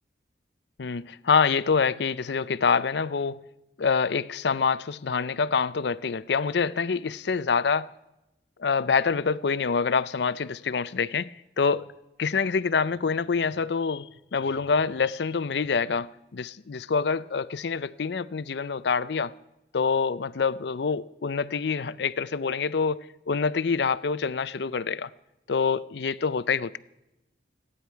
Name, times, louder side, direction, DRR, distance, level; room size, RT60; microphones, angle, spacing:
voice 1, 0.8-3.4 3.8-7.9 8.6-11.9 12.2-19.3 19.7-23.0 23.3-25.1 25.5-26.8, left 5 dB, 65° left, 0.5 m, -26 dB
29.5 x 10.0 x 4.6 m
head